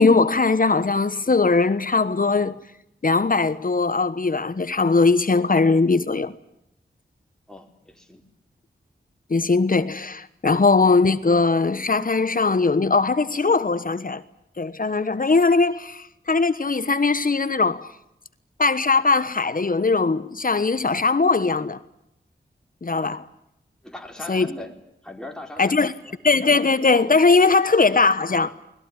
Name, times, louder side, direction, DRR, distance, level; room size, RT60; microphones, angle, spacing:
voice 1, 0.0-2.6 3.0-6.3 9.3-14.2 14.6-17.9 18.6-21.8 22.8-23.3 24.3-24.5 25.6-25.9 26.2-28.5, left 4 dB, 45° left, 1.3 m, -20 dB
voice 2, 7.5-8.3 23.8-24.7 25.0-26.2 27.4-27.6, left 1 dB, 5° left, 4.7 m, -40 dB
21.5 x 21.0 x 9.9 m
wide cardioid pair, 60°, 19 cm